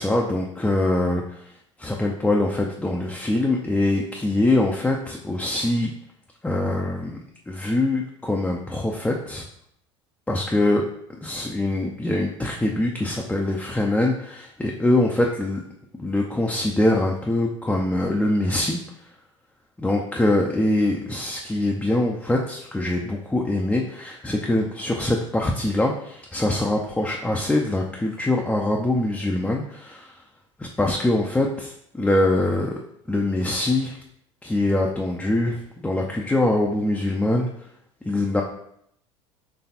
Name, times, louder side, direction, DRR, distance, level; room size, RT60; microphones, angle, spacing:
voice 1, 0.0-1.4 1.8-5.9 6.4-7.2 7.5-9.4 10.3-10.8 11.2-15.6 16.0-18.8 19.8-30.1 30.6-32.7 33.1-34.0 34.4-37.5 38.1-38.4, left 1 dB, 5° left, -1 dB, 0.4 m, -23 dB
4.0 x 3.2 x 2.8 m, 0.71 s
hypercardioid pair, 70°, 16 cm